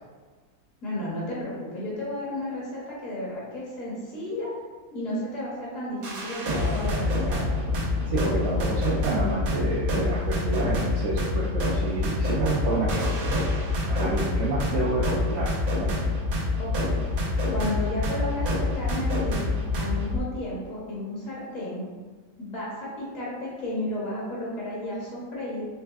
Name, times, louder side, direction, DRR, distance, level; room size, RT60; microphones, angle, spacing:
voice 1, 0.8-4.5 4.9-7.8 16.6-17.0 17.5-19.5 19.8-21.9 22.4-25.7, left 1 dB, 65° left, -6 dB, 1.3 m, -33 dB
sound 1, 6.0-20.2, left 2 dB, 85° right, 1.3 m, -26 dB
voice 2, 8.1-13.6 13.9-16.2, right 3 dB, 65° right, -5 dB, 0.8 m, -29 dB
4.5 x 3.2 x 2.3 m, 1.4 s
omnidirectional pair, 1.5 m